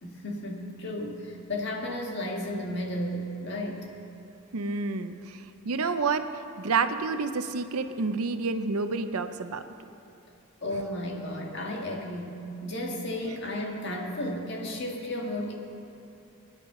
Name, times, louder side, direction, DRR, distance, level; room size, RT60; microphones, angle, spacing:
voice 1, 0.0-3.9 10.6-12.4 12.6-15.5, left 1 dB, 50° left, 0 dB, 1.8 m, -33 dB
voice 2, 4.5-9.6, right 4 dB, 90° right, 9 dB, 0.7 m, -29 dB
22.0 x 10.0 x 3.9 m, 2.8 s
head